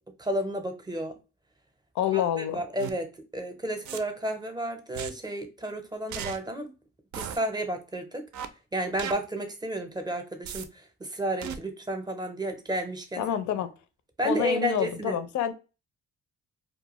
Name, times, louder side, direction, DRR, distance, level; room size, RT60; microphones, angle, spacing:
voice 1, 0.2-1.2 2.1-6.7 7.1-8.2 8.7-13.2 14.2-15.2, right 1 dB, 15° right, 0.6 m, -32 dB
voice 2, 1.9-2.6 13.2-13.7 14.2-15.5, left 9 dB, 70° left, 0.5 m, -27 dB
sound 1, 2.8-2.9 3.9-4.0 4.9-5.1 6.1-6.4 7.1-7.4 8.3-8.5 9.0-9.1 10.5-10.6 11.4-11.6, right 8 dB, 70° right, 0.5 m, -35 dB
2.3 x 2.2 x 2.9 m
cardioid pair, 90°, 30 cm